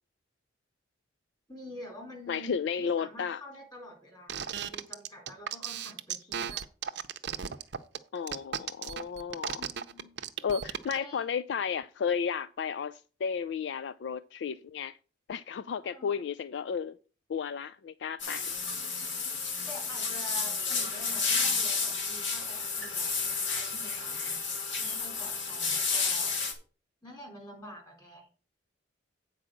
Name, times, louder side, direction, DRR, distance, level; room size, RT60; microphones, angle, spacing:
voice 1, 1.5-6.6 9.5-10.2 10.9-11.3 15.8-16.2 19.4-26.3 27.0-28.3, equal, 20° left, 4.1 m, -47 dB
voice 2, 2.3-3.4 8.1-9.6 10.4-15.0 15.3-17.0 17.3-18.5, left 6 dB, 65° left, 0.3 m, -33 dB
sound 1, 4.3-11.0, right 8 dB, 65° right, 0.6 m, -35 dB
sound 2, 18.2-26.5, left 4 dB, 85° left, 2.1 m, -31 dB
8.7 x 4.7 x 6.4 m
head